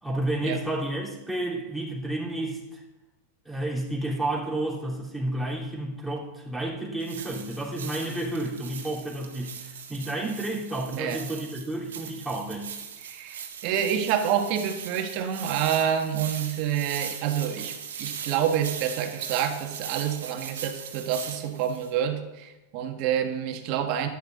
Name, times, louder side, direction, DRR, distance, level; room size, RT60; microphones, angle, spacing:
voice 1, 0.0-2.8 3.4-12.7, right 1 dB, ahead, -5 dB, 3.3 m, -31 dB
sound 1, 7.0-21.9, right 7 dB, 75° right, 1.6 m, -39 dB
voice 2, 13.0-24.1, right 9 dB, 50° right, 6 dB, 1.6 m, -28 dB
11.5 x 10.5 x 3.9 m, 1.0 s
hypercardioid pair, 100°, 0 cm